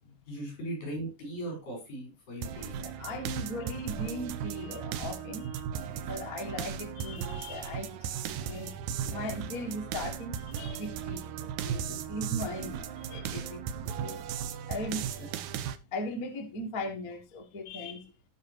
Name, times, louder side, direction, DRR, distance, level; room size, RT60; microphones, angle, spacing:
voice 1, 0.0-2.7 3.1-3.6 11.8-12.0, right 1 dB, 65° left, 7.4 m, -39 dB
sound 1, 2.4-15.8, right 8 dB, 75° right, 2.0 m, -36 dB
voice 2, 2.7-5.6 5.9-14.2 14.7-15.4 15.9-18.1, left 1 dB, 35° left, 1.5 m, -39 dB
16.5 x 6.0 x 3.0 m
omnidirectional pair, 3.8 m